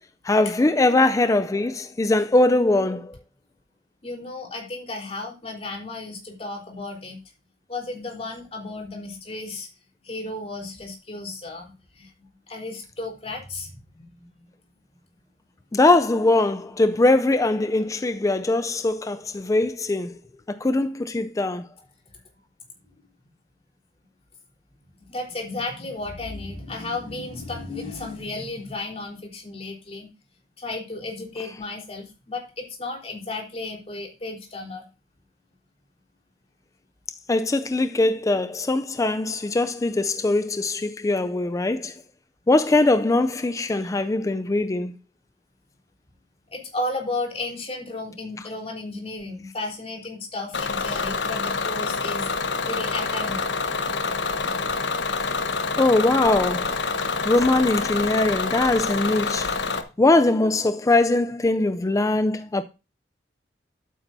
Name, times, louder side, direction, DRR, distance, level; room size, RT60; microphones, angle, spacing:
voice 1, 0.2-3.2 15.7-20.1 20.5-21.6 37.3-41.9 42.5-44.9 48.4-48.5 55.8-59.5 60.0-62.6, left 2 dB, 20° left, 0.4 m, -21 dB
voice 2, 4.0-7.2 7.7-9.7 10.0-11.7 12.0-12.1 12.5-14.1 25.1-30.1 30.6-34.8 46.5-52.3 52.6-53.4, left 2 dB, 35° left, 3.7 m, -33 dB
Bus / Engine, 50.5-59.8, left 4 dB, 85° left, 1.1 m, -27 dB
12.0 x 8.9 x 2.6 m
head